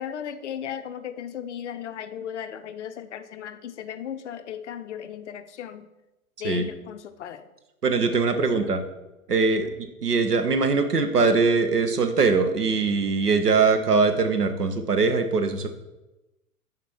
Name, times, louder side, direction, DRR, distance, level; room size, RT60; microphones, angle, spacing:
voice 1, 0.0-5.9 6.4-7.5 8.1-8.7 9.5-9.6, left 9 dB, 50° left, 11 dB, 0.5 m, -36 dB
voice 2, 7.8-8.8 9.3-9.7 10.0-15.7, right 4 dB, 85° right, 8 dB, 0.8 m, -22 dB
6.8 x 4.2 x 4.3 m, 1.0 s
figure-of-eight pair, 110°, 46 cm